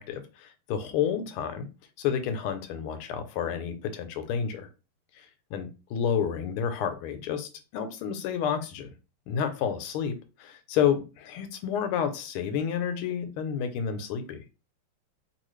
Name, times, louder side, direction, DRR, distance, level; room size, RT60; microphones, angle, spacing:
voice 1, 0.0-1.7 2.0-4.7 5.2-8.9 9.3-14.4, left 8 dB, 90° left, 9 dB, 1.5 m, -30 dB
3.6 x 2.3 x 3.1 m, 0.31 s
omnidirectional pair, 2.3 m